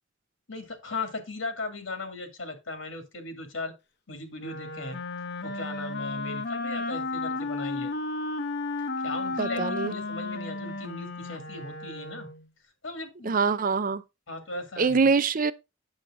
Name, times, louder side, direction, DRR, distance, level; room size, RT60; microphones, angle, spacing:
voice 1, 0.5-3.7 4.1-5.0 5.4-7.9 9.0-12.3 12.8-13.3 14.3-15.0, left 3 dB, 85° left, 2.3 m, -37 dB
Wind instrument woodwind instrument, 4.4-12.5, left 2 dB, 60° left, 1.0 m, -33 dB
voice 2, 9.4-9.9 13.2-14.0 14.8-15.5, right 4 dB, 45° right, 0.5 m, -24 dB
8.9 x 6.8 x 3.7 m
head